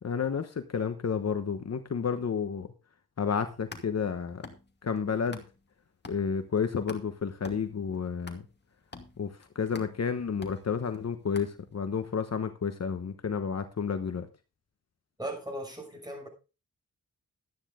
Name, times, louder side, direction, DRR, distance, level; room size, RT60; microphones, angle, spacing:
voice 1, 0.0-2.7 3.2-4.5 4.8-5.4 6.1-8.4 9.2-14.3, left 6 dB, 50° left, 1.2 m, -31 dB
sound 1, 3.4-5.7 6.0-12.0, left 3 dB, 30° left, 2.3 m, -49 dB
voice 2, 15.2-16.3, right 1 dB, 10° right, 6.5 m, -37 dB
12.5 x 9.9 x 3.7 m
wide cardioid pair, 90°, 33 cm